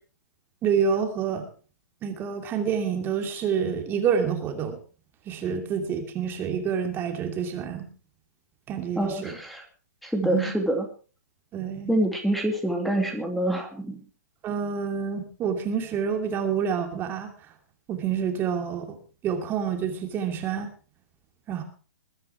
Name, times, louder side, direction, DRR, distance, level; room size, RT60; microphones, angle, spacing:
voice 1, 0.6-1.5 2.0-4.7 5.3-7.9 8.7-9.4 10.2-10.5 11.5-12.0 14.4-17.3 17.9-19.0 19.2-20.7 21.5-21.6, right 7 dB, 25° right, 5 dB, 2.7 m, -28 dB
voice 2, 9.0-9.6 10.0-10.8 11.9-14.0, right 1 dB, ahead, 4 dB, 2.7 m, -26 dB
21.5 x 9.8 x 4.8 m, 0.38 s
figure-of-eight pair, 120°, 9 cm